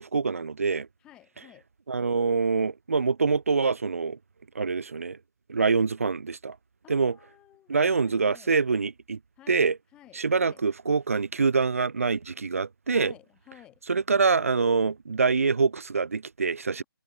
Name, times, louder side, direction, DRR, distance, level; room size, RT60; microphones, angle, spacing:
voice 1, 0.0-0.9 1.9-4.2 4.5-5.2 5.5-6.6 6.9-7.2 7.7-9.2 9.5-9.8 10.1-13.1 13.9-16.8, right 4 dB, 40° right, 0.4 m, -25 dB
voice 2, 1.0-1.7 6.8-8.5 9.4-9.7 9.9-10.7 12.9-13.8, left 13 dB, 5° left, 6.1 m, -53 dB
hypercardioid pair, 180°, 12 cm